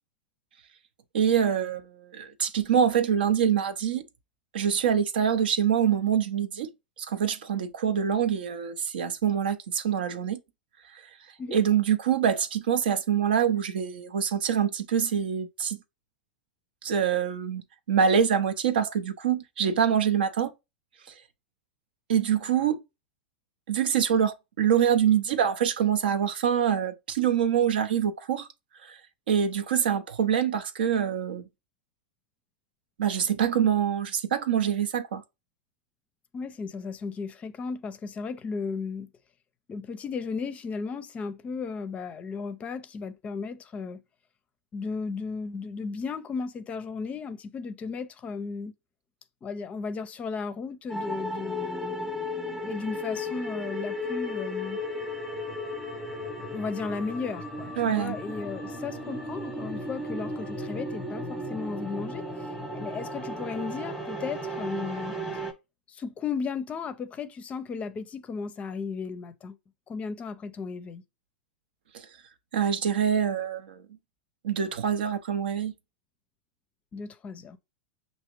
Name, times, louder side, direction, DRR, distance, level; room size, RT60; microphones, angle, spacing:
voice 1, 1.1-4.0 4.5-6.7 7.0-10.4 10.9-11.0 11.5-15.8 16.8-17.6 17.9-20.5 22.1-22.8 23.7-28.5 28.8-29.0 29.3-31.4 33.0-35.2 57.8-58.2 71.9-72.1 72.5-73.8 74.4-75.7, right 8 dB, 70° right, 0.6 m, -25 dB
voice 2, 36.3-39.1 39.7-44.0 44.7-48.7 49.4-52.1 52.5-54.8 56.4-62.5 62.7-65.2 65.9-69.6 69.9-71.0 76.9-77.6, left 5 dB, 25° left, 0.5 m, -35 dB
sound 1, 50.9-65.5, left 1 dB, ahead, 0.9 m, -35 dB
5.6 x 2.7 x 3.0 m
hypercardioid pair, 100°, 5 cm